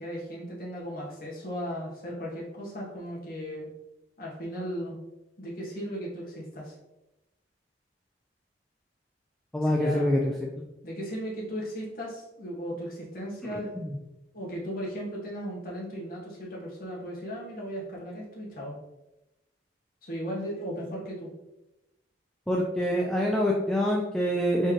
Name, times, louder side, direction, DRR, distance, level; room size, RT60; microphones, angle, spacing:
voice 1, 0.0-3.7 4.2-5.0 5.4-6.7 9.7-10.1 10.8-13.9 14.3-18.8 20.0-21.3, equal, 50° left, -4 dB, 1.4 m, -36 dB
voice 2, 9.5-10.3 13.5-14.0 22.5-24.7, equal, 5° left, -2 dB, 0.3 m, -26 dB
4.2 x 3.8 x 3.2 m, 0.96 s
head